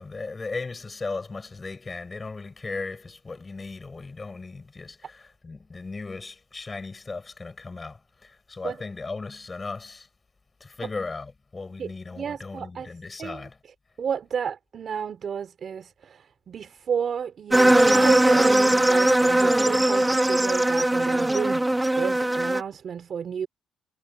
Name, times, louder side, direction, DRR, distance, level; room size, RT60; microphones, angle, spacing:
voice 1, 0.0-10.1 10.6-13.5, left 3 dB, 25° left, 7.2 m, -37 dB
voice 2, 11.8-12.9 13.2-13.4 14.0-21.7 22.0-23.5, right 7 dB, 55° right, 4.4 m, -32 dB
sound 1, 17.5-22.6, right 1 dB, 10° right, 2.1 m, -20 dB
cardioid pair, 90°, 0 cm